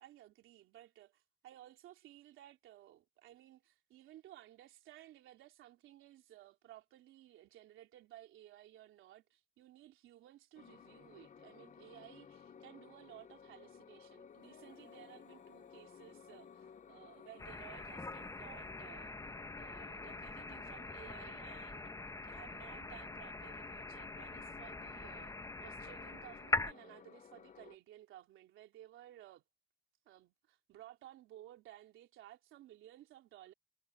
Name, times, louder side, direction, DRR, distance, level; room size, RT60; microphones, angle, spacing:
voice 1, 0.0-19.2 19.6-29.4 30.0-33.5, right 13 dB, 85° right, 3.2 m, -57 dB
sound 1, 10.6-27.8, left 7 dB, 40° left, 0.7 m, -58 dB
Female singing, 14.3-19.5, left 7 dB, 65° left, 3.6 m, -67 dB
sound 2, 17.4-26.7, left 2 dB, 15° left, 1.1 m, -43 dB
cardioid pair, 90°, 20 cm